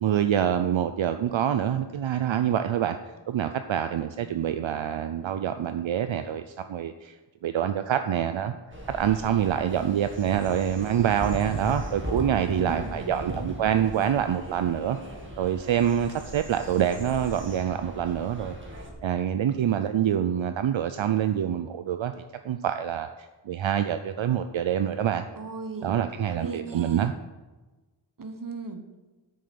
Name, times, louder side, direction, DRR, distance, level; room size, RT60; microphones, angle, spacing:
voice 1, 0.0-3.0 3.3-7.1 7.4-8.5 8.9-15.0 15.4-18.5 19.0-22.1 22.4-23.1 23.5-25.2 25.8-27.1, right 9 dB, 80° right, 9 dB, 0.6 m, -26 dB
sound 1, 8.7-18.9, equal, 25° right, 2.0 m, -38 dB
voice 2, 12.4-13.5 25.4-26.1 26.3-27.1 28.2-28.9, right 4 dB, 45° right, 7 dB, 1.1 m, -37 dB
8.7 x 6.6 x 6.8 m, 1.2 s
wide cardioid pair, 85°, 46 cm